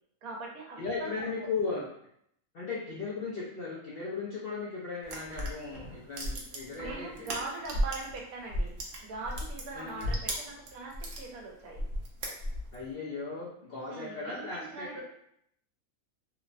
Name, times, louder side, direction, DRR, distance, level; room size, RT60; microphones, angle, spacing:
voice 1, 0.2-1.1 1.4-1.5 6.8-8.7 9.0-11.8 13.9-15.0, right 3 dB, 90° right, 0 dB, 1.1 m, -41 dB
voice 2, 0.8-1.9 2.5-7.3 9.7-10.1 12.7-15.0, left 4 dB, 70° left, -6 dB, 0.5 m, -37 dB
sound 1, 5.0-8.2 8.5-11.2 11.7-12.8, equal, 65° right, 0.7 m, -34 dB
2.9 x 2.0 x 2.4 m, 0.72 s
omnidirectional pair, 1.5 m